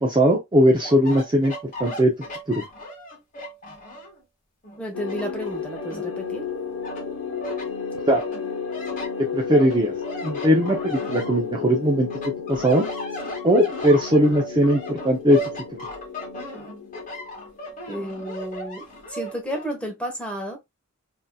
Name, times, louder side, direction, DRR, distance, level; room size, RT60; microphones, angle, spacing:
voice 1, 0.0-2.1 2.5-2.6 8.1-8.2 9.3-9.9 10.2-12.1 12.5-12.9 13.4-15.4, equal, 20° right, 0.5 m, -19 dB
sound 1, 0.7-4.2 4.6-6.4 6.8-7.7 8.1-11.8 12.1-19.7, right 1 dB, 35° left, 1.2 m, -36 dB
voice 2, 4.8-6.5 17.9-20.6, equal, 5° left, 0.9 m, -32 dB
sound 2, 4.9-17.7, left 6 dB, 65° left, 0.9 m, -33 dB
3.6 x 2.7 x 2.2 m
head